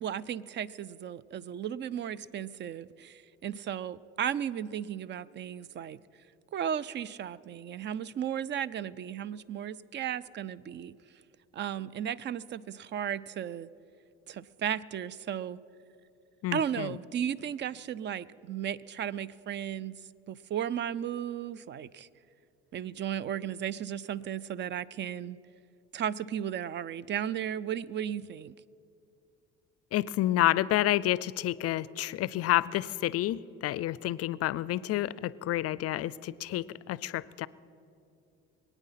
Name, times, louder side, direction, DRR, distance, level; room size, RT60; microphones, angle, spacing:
voice 1, 0.0-6.0 6.5-10.9 11.5-13.7 14.3-15.6 16.5-19.9 20.3-22.1 22.7-25.4 25.9-28.5, right 9 dB, 40° right, 20 dB, 0.4 m, -35 dB
voice 2, 16.4-17.0 29.9-37.5, left 14 dB, 55° left, 20 dB, 0.4 m, -29 dB
22.5 x 9.1 x 5.7 m, 2.7 s
cardioid pair, 95°, 30 cm